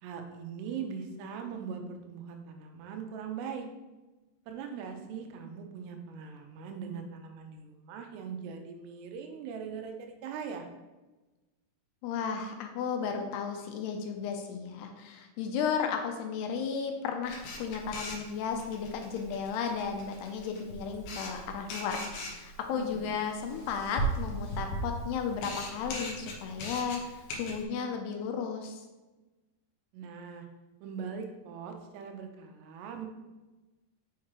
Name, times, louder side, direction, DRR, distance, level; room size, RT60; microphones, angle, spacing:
voice 1, 0.0-3.7 4.5-10.7 22.7-23.0 29.9-30.5 30.8-33.1, right 6 dB, 85° right, 4 dB, 2.8 m, -41 dB
voice 2, 12.0-28.8, left 6 dB, 90° left, 4 dB, 2.8 m, -34 dB
Camera, 17.2-27.6, right 1 dB, 70° left, 2.5 m, -38 dB
6.4 x 5.9 x 3.2 m, 1.1 s
omnidirectional pair, 4.8 m